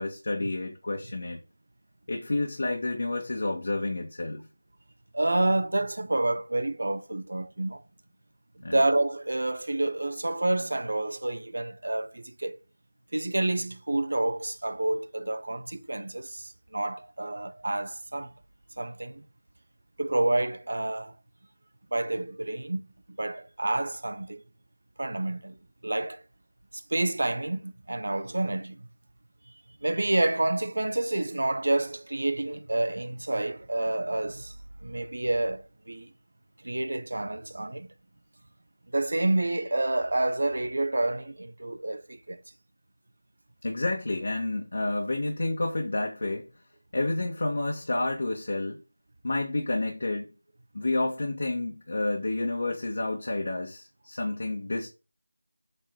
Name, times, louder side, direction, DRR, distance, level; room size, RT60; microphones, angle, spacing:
voice 1, 0.0-1.4 2.1-4.5 8.6-8.8 43.6-46.5 46.9-48.8 49.2-50.3 50.7-54.9, left 2 dB, 55° left, 2.0 m, -30 dB
voice 2, 5.1-7.8 8.7-12.6 13.1-18.3 18.8-19.2 20.0-21.1 21.9-24.4 25.0-25.6 25.8-26.2 26.7-28.9 29.8-34.5 34.8-36.1 36.6-37.9 38.9-42.4, right 2 dB, 65° right, 1.1 m, -29 dB
8.5 x 5.3 x 4.1 m
figure-of-eight pair, 165°, 0 cm